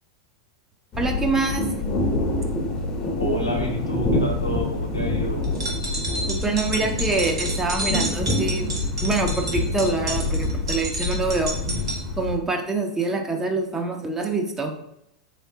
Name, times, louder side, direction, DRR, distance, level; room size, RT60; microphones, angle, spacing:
sound 1, 0.9-12.4, left 2 dB, 30° left, 0.6 m, -26 dB
voice 1, 1.0-1.6 6.3-8.7 9.0-11.5 12.2-14.7, right 3 dB, 15° right, 3 dB, 0.5 m, -25 dB
voice 2, 3.2-5.5, equal, 90° left, 1 dB, 0.7 m, -29 dB
sound 2, 5.4-12.0, right 2 dB, 70° right, 1.0 m, -31 dB
3.5 x 3.1 x 2.8 m, 0.79 s
figure-of-eight pair, 90°, 3 cm